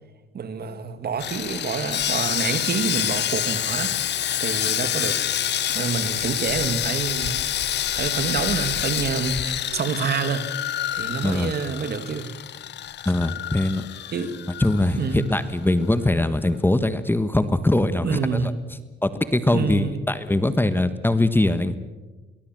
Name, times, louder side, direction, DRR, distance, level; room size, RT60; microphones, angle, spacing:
voice 1, 0.3-5.2 5.7-7.4 7.9-10.5 10.9-12.3 14.1-14.4 15.0-15.3 18.0-18.5 19.5-20.1, right 6 dB, 50° right, 10 dB, 2.1 m, -27 dB
Sawing, 1.2-15.5 15.7-15.9 16.4-16.5, left 11 dB, 60° left, 0.8 m, -27 dB
voice 2, 13.0-13.9 14.6-18.5 19.0-21.8, left 1 dB, 10° left, 12 dB, 1.3 m, -22 dB
23.0 x 19.0 x 7.7 m, 1.2 s
cardioid pair, 90°, 20 cm